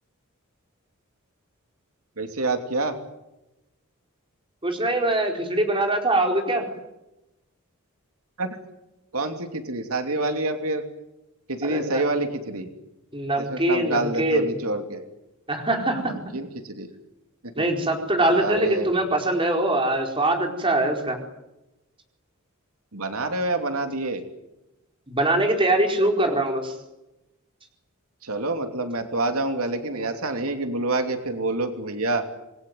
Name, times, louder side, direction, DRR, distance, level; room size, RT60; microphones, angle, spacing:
voice 1, 2.2-2.9 8.4-8.5 9.1-10.8 11.5-12.7 13.4-15.0 16.1-16.9 17.4-17.7 18.3-18.9 22.9-24.2 28.2-32.2, right 2 dB, 80° right, 6 dB, 2.9 m, -27 dB
voice 2, 4.6-6.6 11.6-12.0 13.1-14.5 15.5-16.1 17.6-21.2 25.1-26.7, right 1 dB, 25° right, 3 dB, 4.5 m, -23 dB
27.0 x 21.0 x 9.3 m, 0.95 s
head